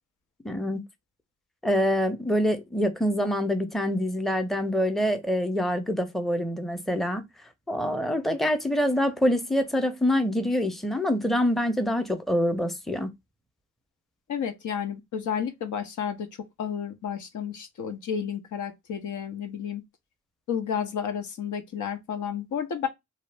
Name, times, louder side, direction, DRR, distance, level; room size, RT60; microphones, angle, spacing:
voice 1, 0.4-0.9 1.6-7.3 7.7-13.1, equal, ahead, 0.6 m, -25 dB
voice 2, 14.3-16.3 16.6-19.8 20.5-22.9, left 8 dB, 75° left, 0.7 m, -31 dB
2.7 x 2.0 x 3.2 m
cardioid pair, 50°, 30 cm